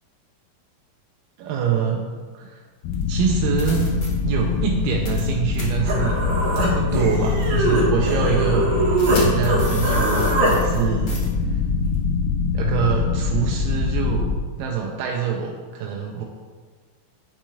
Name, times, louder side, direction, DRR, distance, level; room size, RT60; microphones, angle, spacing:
voice 1, 1.4-2.1 2.4-2.6 3.1-3.9 4.2-6.3 6.7-11.1 12.5-14.3 14.6-16.2, right 7 dB, 85° right, 0 dB, 2.3 m, -25 dB
sound 1, 2.8-14.4, left 4 dB, 85° left, 2.2 m, -23 dB
sound 2, 2.9-3.0 3.6-4.1 5.1-5.3 5.5-5.6 6.5-6.7 7.4-7.5 9.0-10.8 11.1-11.2, left 2 dB, 65° left, 1.1 m, -33 dB
Human voice, 5.5-5.6 5.9-9.2 9.5-10.5, right 2 dB, 60° right, 2.4 m, -22 dB
9.8 x 5.9 x 2.3 m, 1.5 s
omnidirectional pair, 3.9 m